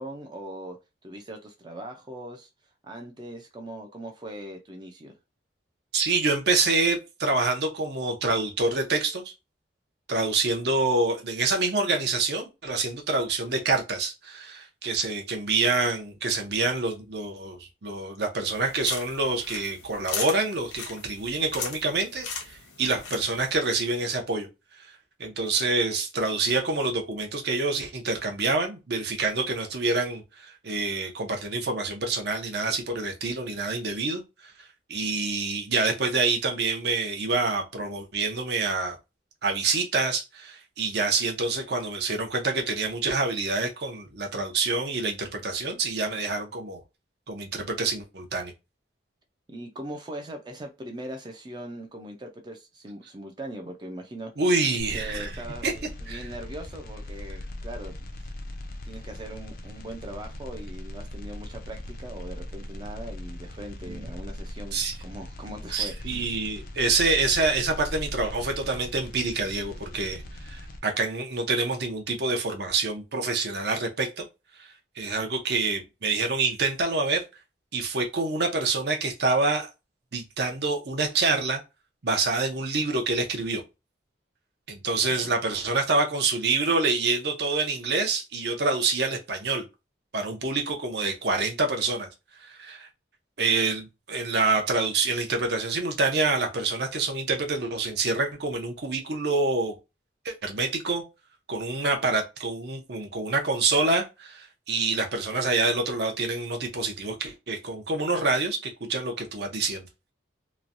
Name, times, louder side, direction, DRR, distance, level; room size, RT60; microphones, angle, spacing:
voice 1, 0.0-2.5 2.8-5.2 49.5-54.3 54.9-55.7 56.0-58.3 58.8-66.4, right 1 dB, 25° right, 0.4 m, -40 dB
voice 2, 5.9-9.3 10.1-24.5 24.8-24.9 25.2-34.5 34.9-39.0 39.4-46.8 47.3-48.5 54.4-55.3 55.6-55.8 56.1-56.3 63.9-64.0 64.7-64.9 65.7-74.2 74.6-77.2 77.7-79.7 80.1-81.6 82.0-83.6 84.7-89.6 90.1-92.1 92.4-92.9 93.4-99.8 100.2-101.0 101.5-109.8, right 3 dB, 55° right, 0.7 m, -27 dB
sound 1, 18.5-23.6, left 5 dB, 80° left, 0.8 m, -37 dB
sound 2, 54.8-70.8, left 1 dB, 50° left, 0.4 m, -39 dB
3.0 x 2.2 x 2.5 m
head